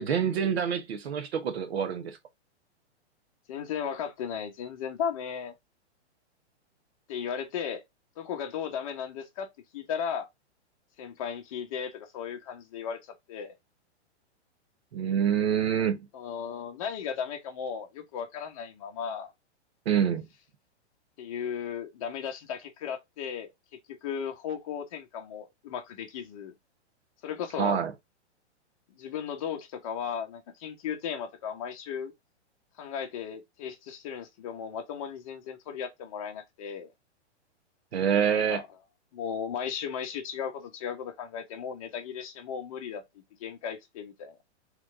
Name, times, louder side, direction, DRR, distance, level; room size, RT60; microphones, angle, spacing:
voice 1, 0.0-2.2 14.9-16.1 19.8-20.3 27.6-27.9 37.9-38.6, right 8 dB, 65° right, 1.0 m, -26 dB
voice 2, 3.5-5.5 7.1-7.8 8.2-9.5 9.7-10.3 11.0-13.0 13.3-13.5 16.1-19.3 21.2-26.5 27.2-27.8 29.0-32.1 32.8-36.9 38.3-38.6 39.1-43.0 43.4-44.4, left 7 dB, 30° left, 0.9 m, -36 dB
3.9 x 3.3 x 3.6 m
hypercardioid pair, 175°, 35 cm